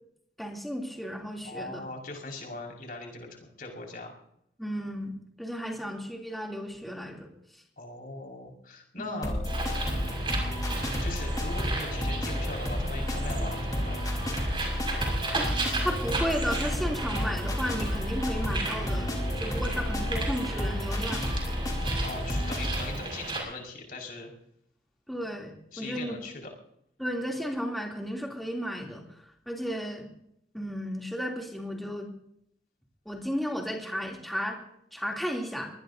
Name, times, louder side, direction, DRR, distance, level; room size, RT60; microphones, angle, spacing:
voice 1, 0.4-1.8 4.6-5.1 5.4-7.3 9.0-9.4 15.3-15.5 15.8-21.3 25.1-26.2 27.0-29.0 29.5-30.1 30.5-32.1 33.0-34.6 34.9-35.7, equal, ahead, -1 dB, 3.0 m, -34 dB
voice 2, 1.4-4.1 7.8-9.4 9.8-14.0 22.0-24.3 25.7-26.5, left 2 dB, 55° left, 0 dB, 5.5 m, -40 dB
sound 1, 9.2-22.9, left 1 dB, 20° left, 4.1 m, -31 dB
Bird, 9.4-23.4, right 2 dB, 30° right, 6.1 m, -35 dB
24.0 x 20.0 x 2.8 m, 0.73 s
head